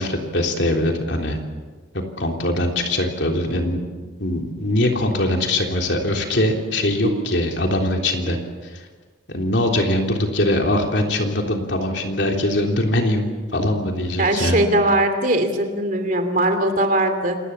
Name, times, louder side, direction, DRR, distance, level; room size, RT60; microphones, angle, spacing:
voice 1, 0.0-1.4 2.2-3.8 4.2-8.4 9.3-13.3 13.5-14.6, left 1 dB, 65° left, 2 dB, 3.5 m, -22 dB
voice 2, 14.2-17.4, right 1 dB, 45° right, 7 dB, 2.8 m, -20 dB
28.0 x 19.5 x 7.3 m, 1.4 s
head